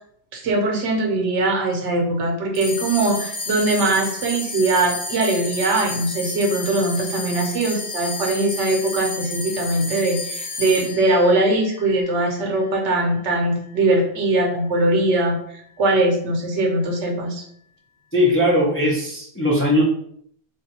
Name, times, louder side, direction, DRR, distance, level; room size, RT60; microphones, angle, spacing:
voice 1, 0.3-17.5, right 2 dB, 75° right, 1 dB, 1.0 m, -21 dB
School bell - Campanella scuola, 2.5-13.2, left 2 dB, 85° left, 1.1 m, -32 dB
voice 2, 18.1-19.8, left 1 dB, 15° left, -4 dB, 0.4 m, -19 dB
3.4 x 2.5 x 2.8 m, 0.66 s
omnidirectional pair, 1.2 m